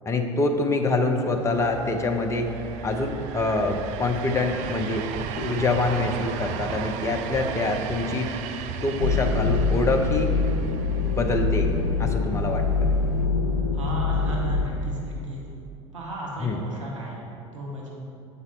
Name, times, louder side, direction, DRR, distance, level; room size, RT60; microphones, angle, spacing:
voice 1, 0.1-2.5 2.8-5.0 5.3-8.3 8.8-10.3 11.1-12.9 16.4-16.6, left 2 dB, 15° left, 3 dB, 0.6 m, -25 dB
sound 1, 1.3-13.2, right 7 dB, 45° right, 0.4 m, -36 dB
sound 2, 9.0-14.6, left 4 dB, 85° left, 0.5 m, -24 dB
voice 2, 13.7-15.4 15.9-17.2 17.5-17.9, right 1 dB, 75° right, -3 dB, 1.0 m, -34 dB
7.6 x 4.1 x 4.0 m, 2.7 s
figure-of-eight pair, 70°, 16 cm